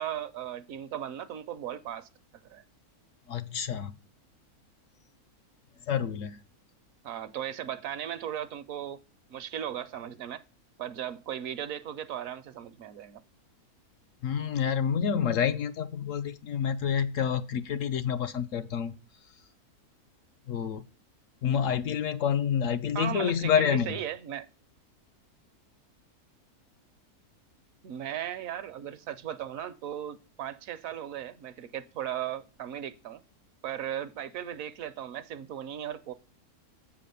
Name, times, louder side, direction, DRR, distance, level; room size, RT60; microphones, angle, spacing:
voice 1, 0.0-2.1 2.5-2.6 7.0-9.0 9.3-10.4 10.8-13.2 22.9-24.5 27.8-33.2 33.6-36.1, right 10 dB, 70° right, 1.0 m, -37 dB
voice 2, 3.3-3.9 5.9-6.4 14.2-18.9 20.5-20.8 21.4-23.9, left 8 dB, 70° left, 0.9 m, -28 dB
8.0 x 5.0 x 6.8 m
omnidirectional pair, 1.6 m